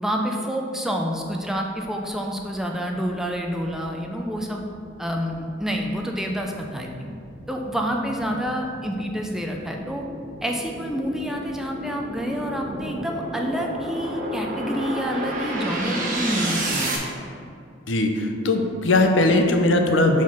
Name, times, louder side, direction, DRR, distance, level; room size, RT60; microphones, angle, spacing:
voice 1, 0.0-4.6 5.0-7.1 7.5-10.0 10.4-17.0, equal, ahead, 1 dB, 0.4 m, -28 dB
sound 1, 2.3-2.4 2.8-17.0, right 1 dB, 45° right, 1.2 m, -32 dB
voice 2, 17.9-20.2, left 2 dB, 70° left, 5 dB, 0.7 m, -19 dB
5.9 x 4.4 x 6.0 m, 2.5 s
head